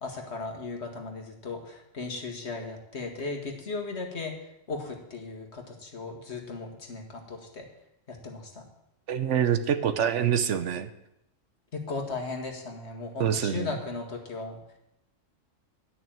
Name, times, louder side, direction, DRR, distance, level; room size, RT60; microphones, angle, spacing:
voice 1, 0.0-4.3 4.7-7.7 8.1-8.6 11.7-14.6, left 3 dB, 60° left, 3 dB, 2.0 m, -36 dB
voice 2, 9.1-10.9 13.2-13.7, right 8 dB, 70° right, 11 dB, 1.1 m, -26 dB
11.5 x 6.2 x 8.9 m, 0.84 s
omnidirectional pair, 1.3 m